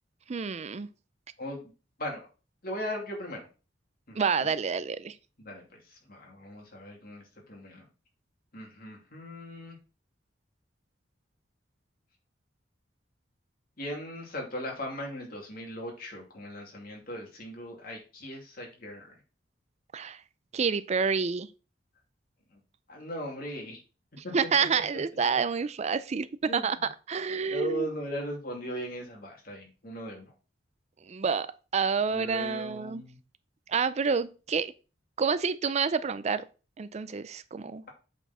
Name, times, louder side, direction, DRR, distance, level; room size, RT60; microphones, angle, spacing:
voice 1, 0.3-0.9 4.2-5.2 19.9-20.2 20.5-21.5 24.2-27.9 31.0-31.5 31.7-33.0 33.7-34.7 35.2-36.4 36.8-37.8, right 5 dB, 35° right, 0.4 m, -28 dB
voice 2, 2.6-3.4 4.1-4.2 5.4-7.9 8.5-9.8 13.8-19.1 22.5-22.6 22.9-23.8 24.2-24.3 26.5-26.7 27.3-30.3 32.1-33.2, equal, 55° left, 2.6 m, -38 dB
8.2 x 4.4 x 4.2 m
head